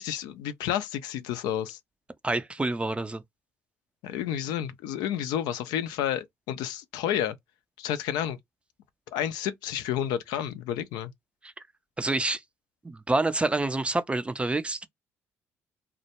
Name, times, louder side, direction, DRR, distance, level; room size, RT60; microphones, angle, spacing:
voice 1, 0.0-1.8 4.0-7.4 7.8-8.4 9.1-11.1, left 10 dB, 75° left, 0.3 m, -30 dB
voice 2, 2.2-3.2 11.4-11.5 12.0-12.4 12.8-14.9, right 2 dB, 15° right, 0.4 m, -27 dB
2.1 x 2.0 x 2.8 m
hypercardioid pair, 55°, 7 cm